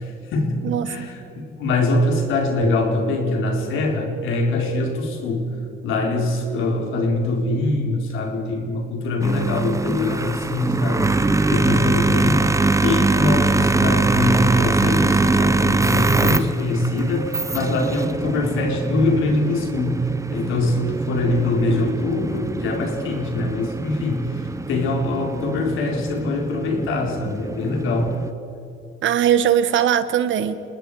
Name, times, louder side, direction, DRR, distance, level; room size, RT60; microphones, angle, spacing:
voice 1, 0.0-5.5 5.8-28.2, left 2 dB, 85° left, 2 dB, 4.1 m, -23 dB
voice 2, 0.6-1.1 29.0-30.5, right 9 dB, 75° right, 12 dB, 1.5 m, -20 dB
sound 1, 9.2-28.3, right 3 dB, 15° right, 1.0 m, -23 dB
29.0 x 20.5 x 4.9 m, 2.9 s
cardioid pair, 90°, 20 cm